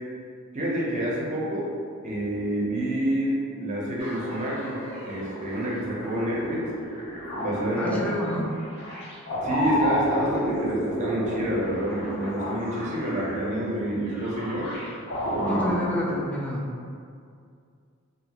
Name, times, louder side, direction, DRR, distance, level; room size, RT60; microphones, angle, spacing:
voice 1, 0.5-1.7 2.0-6.7 7.4-8.2 9.4-14.7 15.4-15.7, right 1 dB, 35° right, -5 dB, 0.6 m, -28 dB
sound 1, 4.0-15.7, equal, 55° left, 0.6 m, -31 dB
voice 2, 7.8-8.5 15.4-16.7, left 1 dB, 5° left, -4 dB, 0.3 m, -29 dB
2.6 x 2.4 x 2.8 m, 2.3 s
head